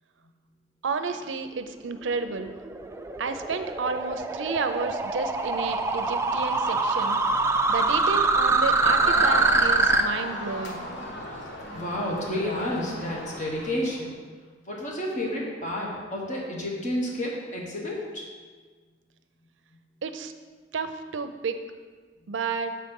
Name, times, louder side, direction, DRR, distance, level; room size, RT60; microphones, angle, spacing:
voice 1, 0.8-2.5 3.2-7.2 7.7-10.9 20.0-20.3 20.7-21.6 22.3-22.7, right 5 dB, 90° right, 8 dB, 0.5 m, -31 dB
sound 1, 2.0-10.0, right 3 dB, 15° right, 0.3 m, -24 dB
Crowd, 8.7-14.1, left 1 dB, 80° left, 1.1 m, -36 dB
voice 2, 11.7-14.1 14.7-18.2, left 1 dB, 40° left, -2 dB, 1.2 m, -30 dB
7.6 x 4.2 x 5.3 m, 1.5 s
head